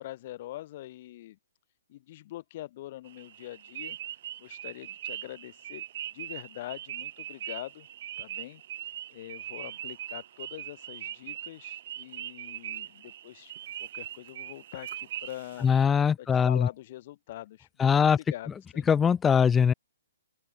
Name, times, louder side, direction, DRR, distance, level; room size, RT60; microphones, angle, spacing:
voice 1, 0.0-1.4 1.9-4.0 4.4-5.8 6.1-7.9 8.2-8.6 9.1-13.5 13.8-15.7 16.2-18.9, left 15 dB, 40° left, 2.2 m, -43 dB
sound 1, 3.1-15.8, right 11 dB, 50° right, 1.2 m, -41 dB
voice 2, 15.6-16.7 17.8-18.2 18.9-19.7, left 7 dB, 10° left, 0.4 m, -22 dB
open air
hypercardioid pair, 150°, 0 cm